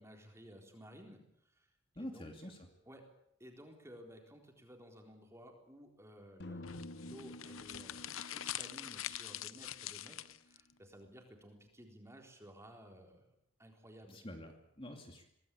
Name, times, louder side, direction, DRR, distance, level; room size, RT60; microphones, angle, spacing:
voice 1, 0.0-1.7 1.9-2.3 2.9-3.0 3.4-13.3 13.6-14.2, equal, 15° right, 3 dB, 4.1 m, -56 dB
voice 2, 2.0-2.7 14.1-15.2, left 1 dB, 25° left, 4 dB, 2.6 m, -47 dB
sound 1, 6.4-10.5, left 1 dB, 55° left, 1.1 m, -51 dB
sound 2, 6.6-10.6, left 12 dB, 80° left, 0.8 m, -44 dB
24.5 x 18.5 x 8.5 m, 0.76 s
head